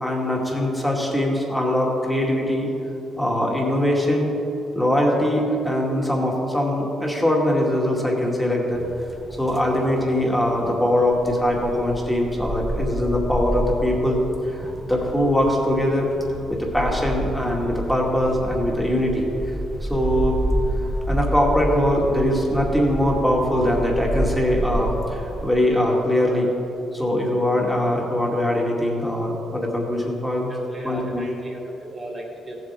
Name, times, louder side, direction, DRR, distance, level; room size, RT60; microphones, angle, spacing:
voice 1, 0.0-2.7 3.2-4.3 4.7-8.8 9.4-14.2 14.5-16.1 16.5-19.5 19.9-20.4 21.1-26.5 26.9-30.5 30.8-31.2, left 1 dB, 5° left, -2 dB, 2.2 m, -22 dB
sound 1, 8.7-25.5, right 1 dB, 15° right, 0.8 m, -30 dB
voice 2, 30.5-32.6, right 1 dB, 30° right, -1 dB, 1.9 m, -36 dB
16.0 x 7.7 x 3.7 m, 2.9 s
cardioid pair, 90°, 0 cm